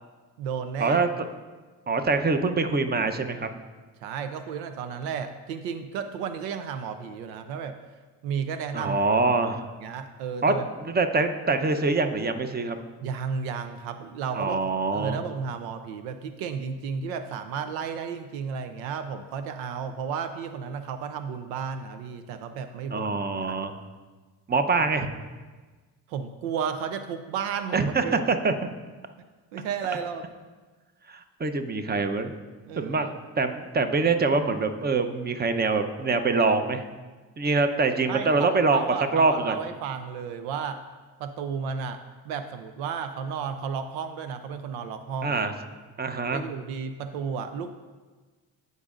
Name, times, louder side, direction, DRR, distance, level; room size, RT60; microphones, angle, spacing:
voice 1, 0.4-1.0 4.0-7.8 8.2-9.0 9.8-10.6 13.0-14.6 14.9-23.2 23.5-23.6 26.1-28.2 29.5-30.2 32.7-33.1 38.1-40.8 41.2-45.4 46.3-47.7, right 6 dB, 85° right, 9 dB, 0.6 m, -33 dB
voice 2, 1.9-3.5 8.7-9.7 10.4-10.5 10.8-12.8 14.3-15.2 22.9-23.8 24.5-25.1 27.7-28.5 31.1-32.3 32.8-36.9 37.4-39.6 45.2-45.5 46.0-46.4, right 3 dB, 20° right, 8 dB, 0.8 m, -24 dB
15.0 x 5.3 x 2.5 m, 1.3 s
supercardioid pair, 60°, 45 cm